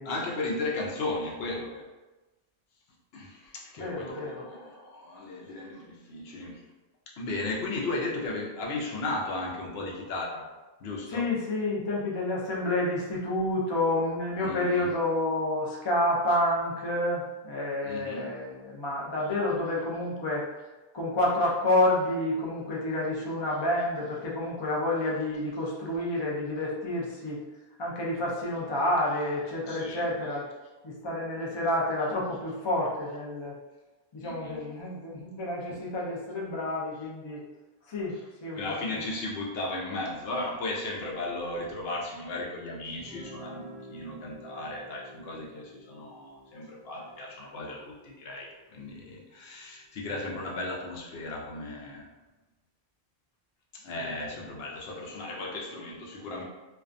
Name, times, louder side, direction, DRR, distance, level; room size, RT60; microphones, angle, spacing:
voice 1, 0.0-1.9 3.1-6.7 7.2-10.5 10.8-11.2 14.4-14.9 17.8-18.3 29.7-30.0 34.2-34.7 38.5-52.1 53.7-56.4, left 2 dB, 75° left, -2 dB, 0.8 m, -35 dB
voice 2, 3.8-4.4 11.1-20.4 20.9-27.4 27.8-30.5 30.8-33.6 34.1-37.4 37.9-39.0 50.3-50.4 54.0-54.4, left 1 dB, 40° left, -4 dB, 0.4 m, -29 dB
Guitar, 43.0-48.7, equal, 55° left, 1.3 m, -50 dB
2.3 x 2.2 x 2.5 m, 1.1 s
omnidirectional pair, 1.1 m